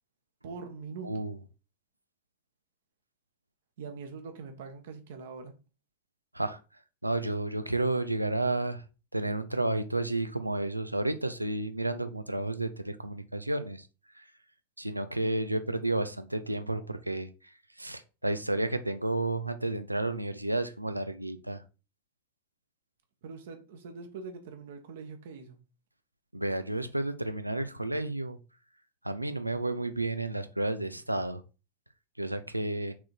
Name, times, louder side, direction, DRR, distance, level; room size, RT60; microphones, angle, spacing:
voice 1, 0.4-1.2 3.8-5.5 23.2-25.6, right 5 dB, 55° right, 1.4 m, -43 dB
voice 2, 1.0-1.4 6.3-6.6 7.0-8.8 9.1-13.8 14.2-14.3 14.8-17.3 17.8-21.6 26.3-28.4 29.0-31.4 32.2-32.9, right 2 dB, 85° right, 0.7 m, -31 dB
6.1 x 4.1 x 4.5 m
figure-of-eight pair, 90°, 0 cm